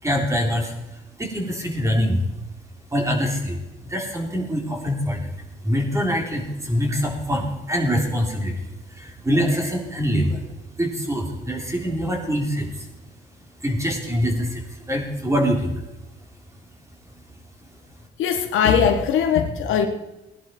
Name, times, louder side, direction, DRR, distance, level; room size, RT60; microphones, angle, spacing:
voice 1, 0.0-2.2 2.9-5.3 5.6-10.4 10.8-12.9 13.6-15.8, equal, 15° right, 1 dB, 3.5 m, -24 dB
voice 2, 18.2-19.9, left 7 dB, 85° left, 5 dB, 1.7 m, -20 dB
18.0 x 11.0 x 4.6 m, 0.98 s
cardioid pair, 90°, 20 cm